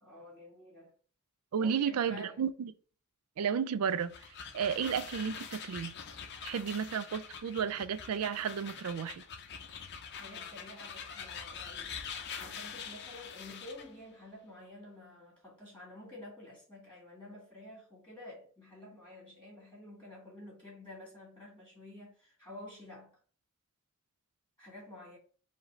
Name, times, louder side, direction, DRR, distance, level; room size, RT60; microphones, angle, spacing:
voice 1, 0.0-0.9 1.6-2.4 10.1-12.0 12.4-23.1 24.6-25.2, left 1 dB, 5° left, 1.7 m, -50 dB
voice 2, 1.5-2.7 3.4-4.1 4.5-5.9 6.4-9.2, right 7 dB, 75° right, 0.4 m, -32 dB
sound 1, 3.8-13.9, left 6 dB, 50° left, 0.6 m, -45 dB
4.8 x 2.7 x 3.1 m
head